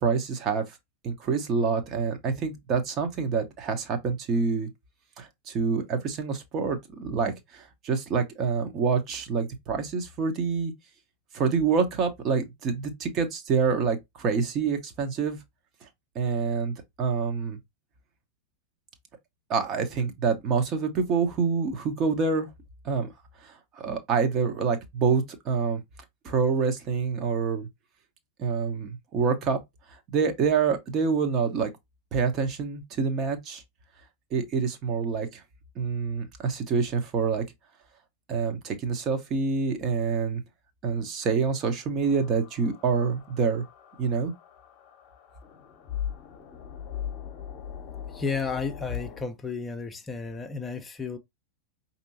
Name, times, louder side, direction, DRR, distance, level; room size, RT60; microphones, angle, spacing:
voice 1, 0.0-0.6 1.0-4.7 5.2-10.7 11.3-15.4 16.1-17.6 19.5-22.5 22.8-23.1 23.4-25.8 26.2-27.7 28.4-29.6 30.1-31.7 32.1-33.6 34.3-35.4 35.8-37.4 38.3-40.4 40.8-43.6 44.0-44.3, right 5 dB, 35° right, 0.9 m, -27 dB
sound 1, 42.0-49.2, left 9 dB, 35° left, 0.9 m, -39 dB
voice 2, 48.1-51.2, left 5 dB, 15° left, 0.6 m, -32 dB
5.3 x 2.8 x 2.7 m
figure-of-eight pair, 90°, 0 cm